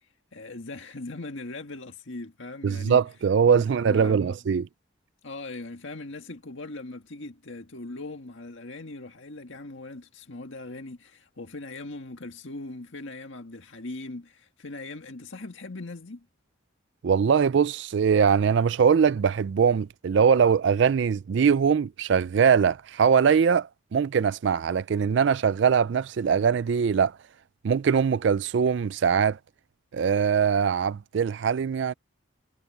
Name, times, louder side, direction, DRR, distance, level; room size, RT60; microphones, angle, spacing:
voice 1, 0.0-3.0 3.5-4.3 5.2-16.3, left 2 dB, 70° left, 1.8 m, -40 dB
voice 2, 2.6-4.7 17.0-27.2 27.6-29.4 29.9-31.9, right 6 dB, 60° right, 0.3 m, -22 dB
head